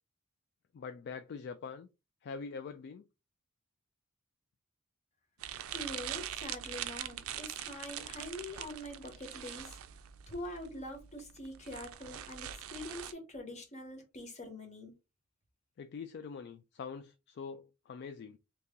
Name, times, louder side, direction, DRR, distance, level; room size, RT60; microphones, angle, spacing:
voice 1, 0.7-1.9 2.2-3.0 15.8-18.4, left 5 dB, 50° left, 0.3 m, -44 dB
sound 1, 5.4-13.1, right 11 dB, 75° right, 0.4 m, -43 dB
voice 2, 5.7-9.8 10.3-14.9, left 1 dB, 35° left, 1.0 m, -44 dB
2.8 x 2.8 x 3.5 m
head